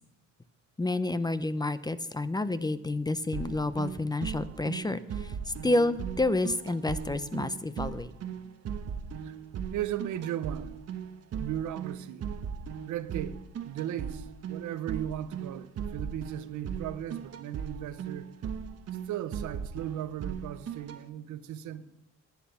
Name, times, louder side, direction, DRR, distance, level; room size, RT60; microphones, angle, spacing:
voice 1, 0.8-8.1, left 2 dB, 15° left, 0.6 m, -29 dB
sound 1, 3.3-21.0, right 7 dB, 55° right, 1.0 m, -38 dB
voice 2, 9.7-10.8 11.4-12.2 12.8-18.3 19.1-21.9, right 11 dB, 80° right, 0.8 m, -36 dB
11.5 x 8.6 x 7.0 m
cardioid pair, 90°, 30 cm